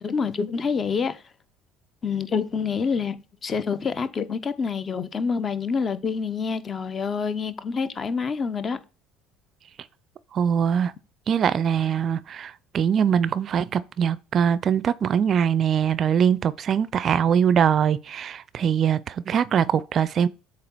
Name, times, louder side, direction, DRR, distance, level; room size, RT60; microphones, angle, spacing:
voice 1, 0.0-1.2 2.0-8.8, left 5 dB, 35° left, 0.6 m, -27 dB
voice 2, 10.3-10.9 11.3-20.3, right 8 dB, 45° right, 0.4 m, -22 dB
7.7 x 2.9 x 4.5 m
hypercardioid pair, 60°, 0 cm